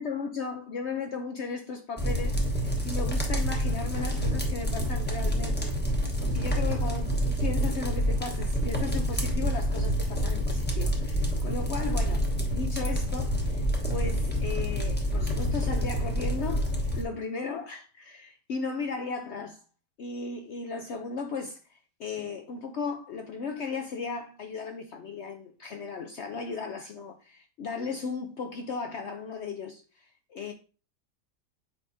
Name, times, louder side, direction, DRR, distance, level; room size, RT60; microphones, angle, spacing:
voice 1, 0.0-19.6 20.0-30.5, left 5 dB, 70° left, 0.6 m, -36 dB
sound 1, 2.0-17.0, equal, 10° left, 0.8 m, -28 dB
7.7 x 4.9 x 2.6 m
omnidirectional pair, 1.9 m